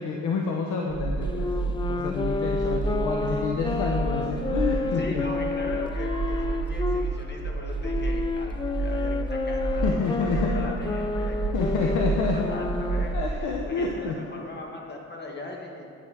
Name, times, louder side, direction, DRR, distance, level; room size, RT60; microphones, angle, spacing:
voice 1, 0.0-5.2 9.8-10.5 11.5-12.5 13.1-14.2, left 5 dB, 85° left, 0 dB, 0.9 m, -28 dB
sound 1, 0.9-13.5, right 3 dB, 35° right, 2.1 m, -30 dB
Wind instrument woodwind instrument, 1.2-7.1 7.8-13.2, left 4 dB, 15° left, 0.4 m, -30 dB
sound 2, 3.2-14.7, left 2 dB, 50° left, 1.0 m, -49 dB
voice 2, 4.9-12.0 12.3-15.9, left 2 dB, 35° left, 0 dB, 1.7 m, -39 dB
9.2 x 7.6 x 4.9 m, 2.6 s
cardioid pair, 90°, 30 cm